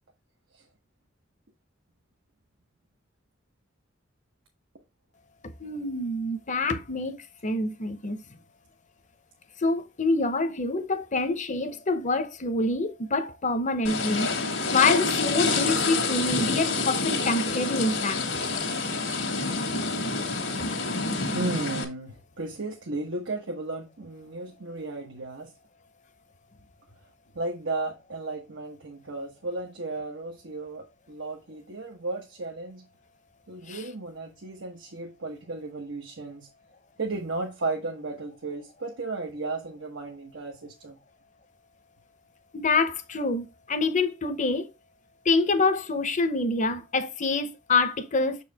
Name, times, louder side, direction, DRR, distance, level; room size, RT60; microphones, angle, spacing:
voice 1, 5.6-7.2 7.4-8.2 9.6-14.3 14.7-18.2 33.7-33.8 42.5-44.7 45.2-48.4, left 3 dB, 40° left, 0.8 m, -26 dB
sound 1, 13.8-21.8, left 3 dB, 75° left, 1.7 m, -27 dB
voice 2, 21.3-25.5 27.3-32.9 33.5-36.5 37.0-41.0, right 3 dB, 90° right, 1.2 m, -34 dB
6.7 x 4.7 x 3.4 m
head